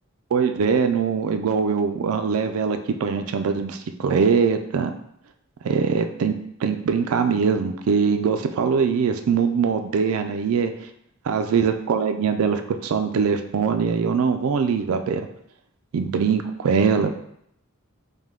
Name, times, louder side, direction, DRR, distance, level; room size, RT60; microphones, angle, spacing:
voice 1, 0.3-4.9 5.6-6.3 6.6-10.7 11.3-15.2 15.9-17.2, right 6 dB, 90° right, 7 dB, 0.4 m, -22 dB
5.2 x 2.2 x 3.6 m, 0.72 s
head